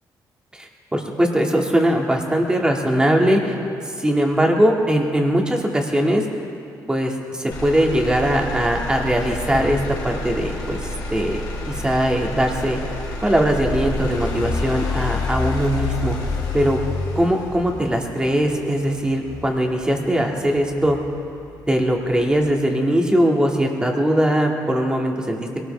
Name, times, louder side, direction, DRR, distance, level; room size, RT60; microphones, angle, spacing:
voice 1, 0.5-3.6 4.0-6.3 6.9-9.8 10.0-12.8 13.2-16.2 16.5-16.8 17.2-21.0 21.7-25.5, equal, 10° right, 1 dB, 2.0 m, -20 dB
Motor vehicle (road), 7.5-21.5 22.0-22.5, left 2 dB, 70° left, 2.5 m, -29 dB
22.0 x 18.0 x 3.4 m, 2.5 s
cardioid pair, 110°, 7 cm